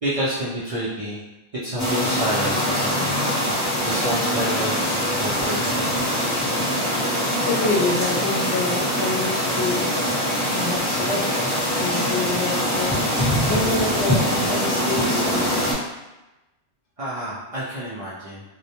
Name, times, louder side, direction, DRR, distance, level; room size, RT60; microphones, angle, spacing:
voice 1, 0.0-1.2 1.5-3.6 3.8-6.0 17.0-18.4, equal, 50° right, -9 dB, 0.4 m, -29 dB
sound 1, 1.8-15.7, equal, 20° left, 0.7 m, -23 dB
voice 2, 7.5-9.8 10.5-11.4 11.7-12.9 13.5-15.6, left 3 dB, 85° left, -3 dB, 0.9 m, -27 dB
2.1 x 2.1 x 2.8 m, 1.0 s
omnidirectional pair, 1.1 m